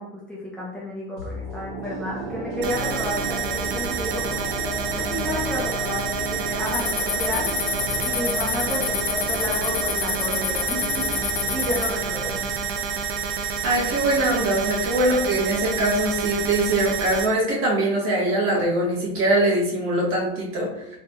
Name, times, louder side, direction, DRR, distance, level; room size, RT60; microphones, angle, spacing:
voice 1, 0.0-4.5 4.9-7.5 8.0-11.1 11.5-12.4, equal, 5° left, -6 dB, 0.6 m, -31 dB
sound 1, 1.2-14.3 14.6-14.7, equal, 65° right, 1.4 m, -33 dB
sound 2, 2.6-17.3, right 6 dB, 85° right, 0.6 m, -28 dB
sound 3, 6.7-11.9, left 10 dB, 75° left, 0.5 m, -29 dB
voice 2, 13.6-20.7, right 1 dB, 50° right, -3 dB, 1.3 m, -22 dB
3.3 x 2.7 x 2.2 m, 0.81 s
supercardioid pair, 110°, 29 cm